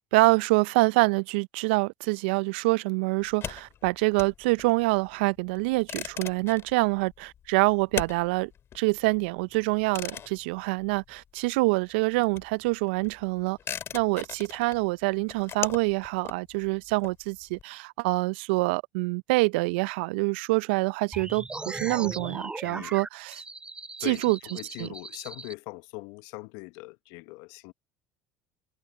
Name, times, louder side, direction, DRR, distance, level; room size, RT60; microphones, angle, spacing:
voice 1, 0.0-8.5 8.7-13.6 13.9-23.4 24.0-24.9, right 26 dB, 70° right, 0.6 m, -26 dB
sound 1, 3.2-11.6 11.8-17.6, left 9 dB, 45° left, 2.8 m, -40 dB
sound 2, 21.1-25.5, right 3 dB, 15° right, 3.4 m, -38 dB
voice 2, 22.6-22.9 24.0-27.7, left 26 dB, 65° left, 1.0 m, -41 dB
hypercardioid pair, 70°, 6 cm